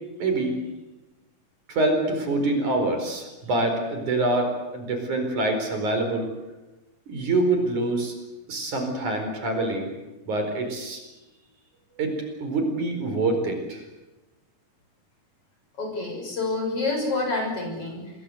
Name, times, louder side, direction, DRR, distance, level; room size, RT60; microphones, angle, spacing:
voice 1, 0.2-0.6 1.7-6.3 7.1-8.1 8.5-9.9 10.3-11.0 12.0-13.8, right 2 dB, 55° right, 5 dB, 5.9 m, -25 dB
voice 2, 15.8-18.1, left 3 dB, 40° left, 2 dB, 7.2 m, -28 dB
27.0 x 21.5 x 8.1 m, 1.1 s
omnidirectional pair, 4.3 m